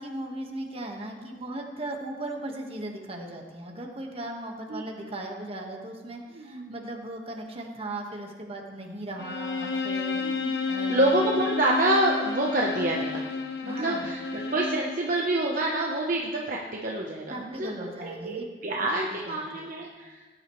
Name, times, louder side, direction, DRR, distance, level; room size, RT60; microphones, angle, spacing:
voice 1, 0.0-10.4 10.7-11.1 13.6-14.1 17.3-18.4 18.8-19.8, right 1 dB, 30° right, 1 dB, 1.5 m, -37 dB
voice 2, 6.4-6.7 10.1-10.5 10.9-13.2 13.6-17.7 18.0-20.2, right 1 dB, 50° right, -2 dB, 1.0 m, -27 dB
Bowed string instrument, 9.2-15.0, left 4 dB, 65° left, 1.1 m, -31 dB
18.0 x 10.0 x 3.2 m, 1.3 s
head